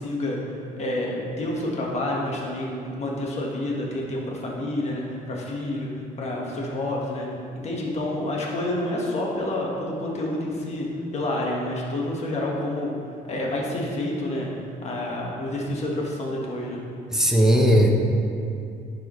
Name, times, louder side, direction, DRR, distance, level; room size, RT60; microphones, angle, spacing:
voice 1, 0.0-5.9 6.2-7.3 7.6-10.9 11.1-12.9 13.3-14.5 14.8-16.8, left 1 dB, 40° left, -3 dB, 1.5 m, -28 dB
voice 2, 17.1-17.9, equal, 5° right, 0 dB, 0.9 m, -17 dB
11.0 x 4.8 x 3.2 m, 2.5 s
cardioid pair, 110°, 17 cm